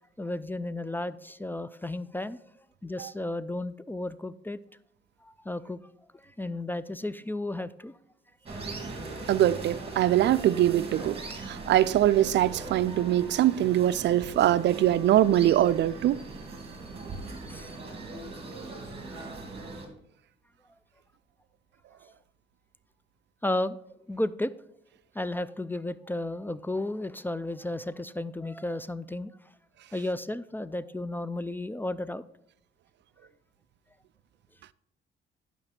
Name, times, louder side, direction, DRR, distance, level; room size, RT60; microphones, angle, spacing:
voice 1, 0.2-2.4 2.8-4.6 5.2-5.8 6.1-7.9 17.5-17.7 23.4-23.8 24.1-24.5 25.1-29.3 29.9-32.2, left 1 dB, 10° left, 0.3 m, -33 dB
sound 1, 8.5-19.9, right 3 dB, 30° right, 2.3 m, -40 dB
voice 2, 9.3-16.2, right 12 dB, 65° right, 0.4 m, -23 dB
10.5 x 5.8 x 4.2 m
cardioid pair, 90°, 20 cm